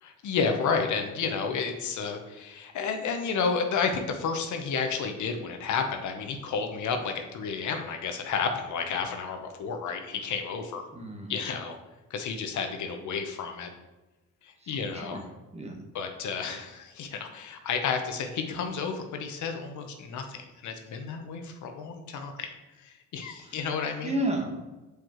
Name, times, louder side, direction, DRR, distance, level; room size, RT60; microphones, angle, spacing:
voice 1, 0.0-10.9 11.3-11.8 12.1-13.7 14.4-15.2 15.9-22.5 22.8-24.2, left 5 dB, 75° left, 5 dB, 0.9 m, -31 dB
voice 2, 10.9-11.3 14.6-15.2 15.5-15.8 23.5-23.6 24.0-24.6, right 1 dB, 20° right, 1 dB, 1.3 m, -32 dB
6.9 x 4.8 x 3.1 m, 1.1 s
cardioid pair, 90°, 30 cm